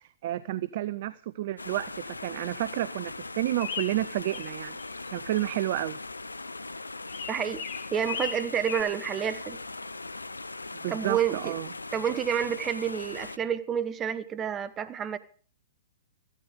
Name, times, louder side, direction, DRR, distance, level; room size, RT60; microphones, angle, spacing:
voice 1, 0.0-4.8 5.1-6.0 10.8-11.7, right 14 dB, 50° right, 17 dB, 0.6 m, -31 dB
sound 1, 1.6-13.4, left 3 dB, 85° left, 0.6 m, -40 dB
sound 2, 3.6-4.5 4.8-5.4 7.1-8.8, left 7 dB, 50° left, 2.0 m, -36 dB
voice 2, 7.3-7.6 7.9-9.6 10.9-11.5 11.9-15.2, right 8 dB, 20° right, 14 dB, 1.1 m, -29 dB
14.5 x 13.0 x 5.1 m, 0.43 s
figure-of-eight pair, 115°, 0 cm